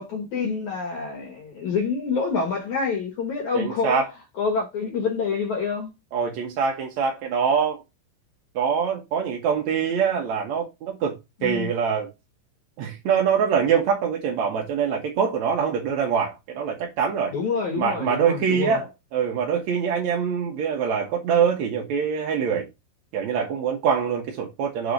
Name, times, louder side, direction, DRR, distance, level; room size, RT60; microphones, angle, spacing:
voice 1, 0.0-4.0 4.4-5.9 11.4-11.7 17.3-18.8, left 5 dB, 60° left, 2.1 m, -27 dB
voice 2, 3.5-4.1 6.1-7.8 8.5-11.1 11.4-12.1 12.8-17.3 17.8-22.7 23.1-24.9, right 7 dB, 70° right, 1.7 m, -24 dB
6.9 x 3.7 x 5.2 m
omnidirectional pair, 5.1 m